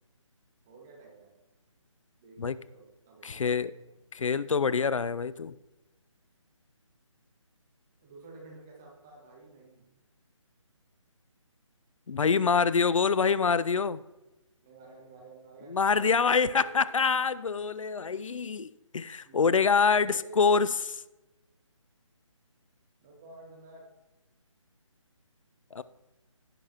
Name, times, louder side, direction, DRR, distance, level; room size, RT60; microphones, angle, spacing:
voice 1, 0.7-1.4 2.2-4.0 8.0-9.9 14.6-17.4 19.2-19.6 20.0-20.5 23.0-23.9, right 3 dB, 5° right, 0 dB, 0.3 m, -51 dB
voice 2, 3.2-3.7 4.1-5.5 12.1-14.0 15.7-20.7 25.7-25.8, left 5 dB, 75° left, 17 dB, 0.5 m, -25 dB
16.5 x 6.7 x 2.9 m, 1.0 s
figure-of-eight pair, 160°, 17 cm